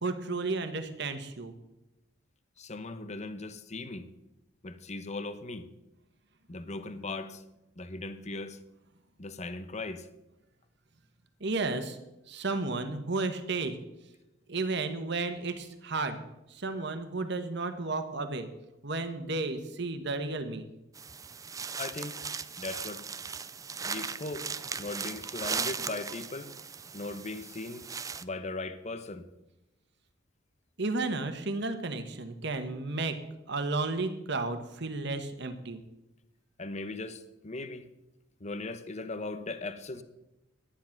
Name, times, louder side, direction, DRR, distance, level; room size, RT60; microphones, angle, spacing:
voice 1, 0.0-1.5 11.4-12.0 12.3-13.7 14.5-16.2 16.5-18.5 18.8-20.7 30.8-33.2 33.5-35.8, right 3 dB, 60° right, 8 dB, 1.3 m, -33 dB
voice 2, 2.6-4.1 4.6-5.7 6.5-7.4 7.8-8.6 9.2-10.1 21.8-22.2 22.6-23.0 23.8-24.5 24.8-26.5 26.9-27.9 28.2-29.3 36.6-37.9 38.4-40.0, left 2 dB, 35° left, 11 dB, 0.9 m, -38 dB
sound 1, 20.9-28.2, right 5 dB, 15° right, 0.4 m, -38 dB
11.5 x 10.0 x 5.9 m, 0.93 s
head